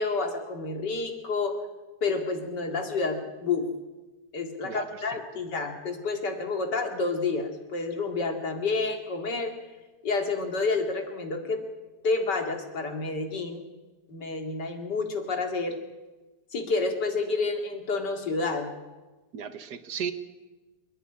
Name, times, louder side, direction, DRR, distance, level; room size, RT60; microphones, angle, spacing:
voice 1, 0.0-1.6 2.0-3.7 4.3-9.5 10.0-11.6 12.0-13.6 14.1-15.8 16.5-18.7, left 3 dB, 85° left, 4 dB, 2.9 m, -29 dB
voice 2, 4.6-5.0 19.3-20.1, right 7 dB, 75° right, 10 dB, 1.8 m, -35 dB
28.0 x 10.0 x 9.8 m, 1.2 s
omnidirectional pair, 1.8 m